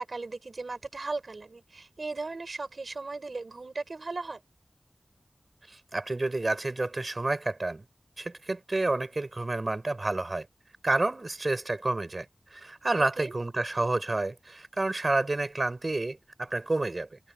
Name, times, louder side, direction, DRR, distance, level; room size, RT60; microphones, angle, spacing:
voice 1, 0.0-4.4 13.0-13.3, right 3 dB, 80° right, 4.6 m, -37 dB
voice 2, 5.7-7.8 8.2-10.5 10.8-12.3 12.5-17.2, right 2 dB, 55° right, 5.5 m, -29 dB
wide cardioid pair, 40°, 0 cm